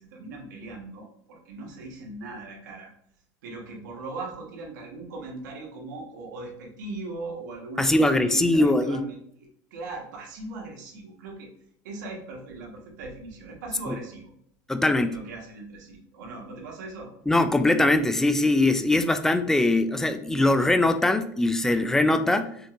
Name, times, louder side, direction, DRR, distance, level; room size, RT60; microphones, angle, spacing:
voice 1, 0.0-2.9 3.4-11.5 11.8-14.3 14.8-17.1, right 3 dB, 90° right, 0 dB, 1.3 m, -39 dB
voice 2, 7.8-9.0 13.9-14.0 14.7-15.1 17.3-22.5, left 2 dB, 5° left, 9 dB, 0.3 m, -21 dB
5.2 x 2.8 x 2.5 m, 0.67 s
supercardioid pair, 135°, 10 cm